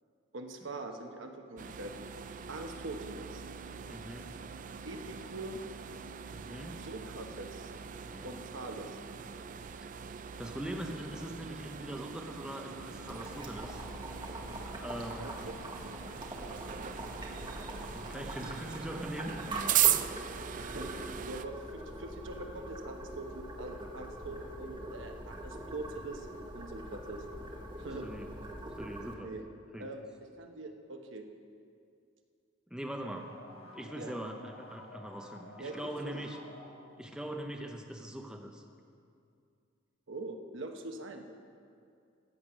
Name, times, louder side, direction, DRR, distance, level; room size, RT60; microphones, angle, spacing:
voice 1, 0.3-2.2 2.5-3.4 4.8-5.6 6.7-7.7 8.2-9.0 15.2-15.6 20.6-26.3 26.5-27.2 27.8-28.1 29.2-29.5 29.8-31.3 33.9-34.1 35.6-35.8 36.0-36.2 40.1-41.2, right 2 dB, 65° right, 4 dB, 1.0 m, -43 dB
sound 1, 1.6-21.5, right 10 dB, 40° right, 0.4 m, -38 dB
voice 2, 3.9-4.3 6.3-6.8 8.0-8.5 10.4-13.8 14.8-15.4 16.2-16.4 17.9-19.4 28.0-28.3 28.8-29.3 29.7-29.9 32.7-36.4 37.0-38.6, right 1 dB, 5° right, 2 dB, 0.7 m, -42 dB
Boiling, 13.1-29.1, right 1 dB, 25° right, 1.3 m, -43 dB
sound 2, 33.0-37.6, left 2 dB, 90° left, 1.9 m, -52 dB
14.5 x 8.3 x 6.2 m, 2.4 s
head